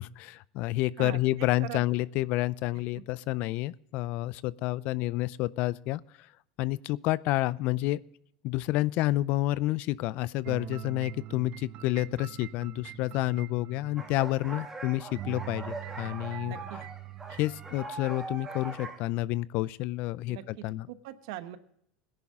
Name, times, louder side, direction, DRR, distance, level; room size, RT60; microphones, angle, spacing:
voice 1, 0.0-6.3 6.6-8.0 8.4-16.5 17.4-20.9, left 17 dB, 60° left, 20 dB, 0.5 m, -29 dB
voice 2, 1.0-1.8 2.9-3.0 16.4-16.8 20.3-21.6, right 13 dB, 75° right, 11 dB, 1.2 m, -41 dB
sound 1, 10.4-14.8 15.1-17.8, right 15 dB, 50° right, 0.6 m, -43 dB
sound 2, 14.0-19.0, right 3 dB, 15° right, 2.8 m, -41 dB
18.0 x 10.5 x 3.6 m, 0.69 s
supercardioid pair, 100°, 3 cm